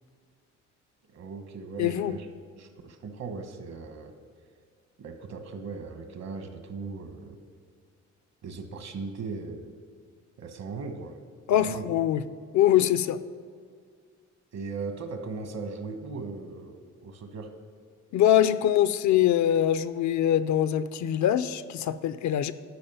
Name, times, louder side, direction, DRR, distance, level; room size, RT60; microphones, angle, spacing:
voice 1, 1.1-2.3 2.6-4.2 5.0-7.4 8.4-9.6 10.4-11.2 11.5-11.9 14.5-17.5, right 4 dB, 60° right, 7 dB, 1.2 m, -38 dB
voice 2, 1.8-2.1 11.5-12.2 12.5-13.2 18.1-22.5, left 11 dB, 70° left, 13 dB, 0.5 m, -23 dB
12.5 x 5.1 x 5.6 m, 2.1 s
cardioid pair, 90°, 30 cm